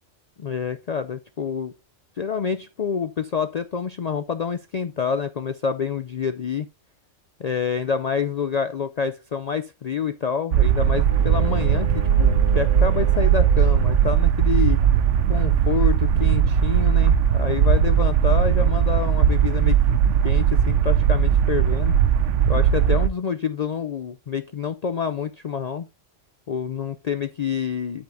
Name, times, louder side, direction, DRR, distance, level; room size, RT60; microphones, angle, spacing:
voice 1, 0.4-1.7 2.2-6.7 7.4-14.8 15.3-19.8 20.2-22.0 22.5-25.9 26.5-28.0, left 6 dB, 75° left, 0.3 m, -27 dB
sound 1, 10.5-23.1, right 8 dB, 70° right, 1.0 m, -19 dB
Bowed string instrument, 11.0-14.3, right 1 dB, 35° right, 0.8 m, -36 dB
8.9 x 8.2 x 2.6 m
omnidirectional pair, 1.3 m